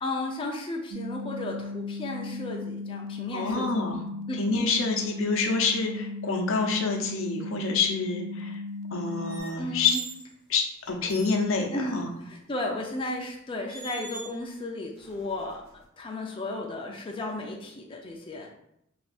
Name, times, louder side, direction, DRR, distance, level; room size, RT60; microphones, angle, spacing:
voice 1, 0.0-3.7 4.3-4.4 9.6-10.0 11.7-15.6 16.0-18.6, left 2 dB, 25° left, 0 dB, 0.4 m, -34 dB
sound 1, 0.9-9.4, left 3 dB, 85° right, 0.4 m, -36 dB
voice 2, 3.3-4.0 4.4-8.6 8.9-10.0 10.5-12.1, left 4 dB, 75° left, 2 dB, 0.6 m, -27 dB
sound 2, 9.2-10.3 10.9-11.4 12.8-13.0 13.7-14.5 15.0-15.8, right 3 dB, 50° right, 1.1 m, -43 dB
3.4 x 2.4 x 4.2 m, 0.76 s
head